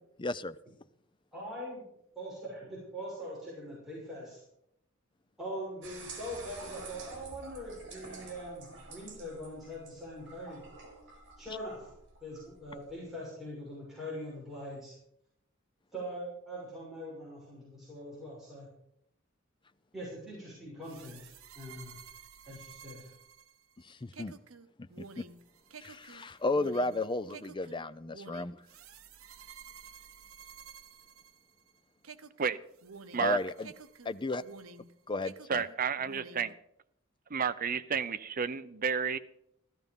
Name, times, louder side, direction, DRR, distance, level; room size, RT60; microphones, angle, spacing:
voice 1, 0.2-0.6 23.8-24.3 24.8-25.2 25.8-28.6 33.2-33.7 34.0-34.4 35.1-35.6, left 2 dB, 25° left, 14 dB, 0.5 m, -34 dB
voice 2, 1.3-1.9 2.1-4.4 5.4-10.6 11.4-11.9 12.2-15.0 15.9-18.7 19.9-22.0 22.5-23.1, equal, ahead, -8 dB, 6.2 m, -42 dB
sound 1, 5.8-13.0, right 3 dB, 60° right, 3.8 m, -49 dB
sound 2, 20.8-31.7 32.0-34.9 35.2-36.5, right 5 dB, 80° right, 0.9 m, -51 dB
voice 3, 35.5-36.5 37.3-39.2, right 6 dB, 45° right, 12 dB, 0.7 m, -31 dB
15.0 x 13.5 x 5.4 m, 0.77 s
head